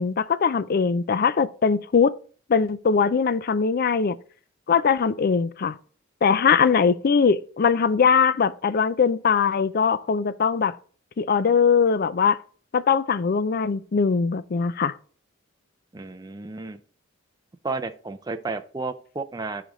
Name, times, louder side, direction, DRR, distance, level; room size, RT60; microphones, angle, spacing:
voice 1, 0.0-2.1 2.5-4.2 4.7-5.8 6.2-10.8 11.2-12.4 12.7-14.9, left 6 dB, 45° left, 0.4 m, -21 dB
voice 2, 15.9-16.8 17.6-19.6, right 3 dB, 20° right, 0.5 m, -32 dB
14.0 x 5.0 x 3.1 m
head